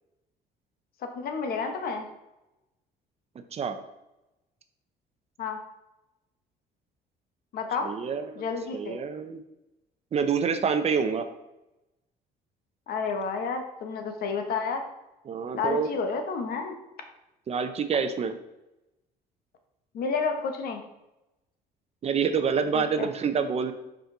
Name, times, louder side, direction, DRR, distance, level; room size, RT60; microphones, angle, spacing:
voice 1, 1.0-2.1 5.4-5.6 7.5-7.9 8.4-9.0 12.9-14.8 15.5-16.7 19.9-20.8 22.7-23.1, left 5 dB, 65° left, 6 dB, 1.0 m, -30 dB
voice 2, 7.8-8.4 8.7-9.4 10.1-11.3 15.3-15.9 17.5-18.4 22.0-23.7, right 6 dB, 40° right, 9 dB, 0.6 m, -27 dB
5.3 x 5.0 x 3.8 m, 0.94 s
cardioid pair, 110°, 17 cm